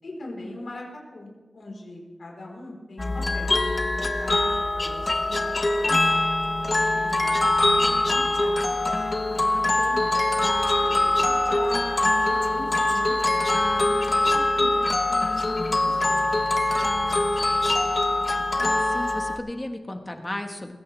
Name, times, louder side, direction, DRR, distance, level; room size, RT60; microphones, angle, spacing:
voice 1, 0.0-3.6 4.2-6.3 6.7-8.9 10.8-12.0 12.3-16.3 16.8-17.8, left 1 dB, 55° left, -2 dB, 4.0 m, -41 dB
sound 1, 3.0-19.4, left 2 dB, 35° left, 1.2 m, -23 dB
voice 2, 9.3-10.1 18.6-20.7, left 1 dB, 15° left, 4 dB, 1.3 m, -35 dB
20.5 x 16.5 x 3.4 m, 1.3 s
wide cardioid pair, 140°, 0 cm